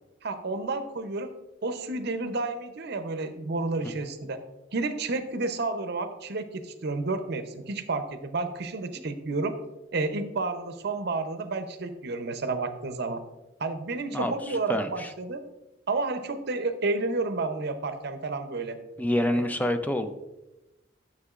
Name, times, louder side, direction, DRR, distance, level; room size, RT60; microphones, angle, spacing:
voice 1, 0.2-1.3 1.6-4.4 4.7-9.5 9.9-13.2 13.6-15.4 15.9-18.8 19.3-19.5, right 3 dB, 60° right, 9 dB, 0.7 m, -31 dB
voice 2, 14.1-15.1 19.0-20.1, left 1 dB, 10° left, 8 dB, 0.5 m, -28 dB
9.6 x 6.7 x 2.4 m, 0.98 s
head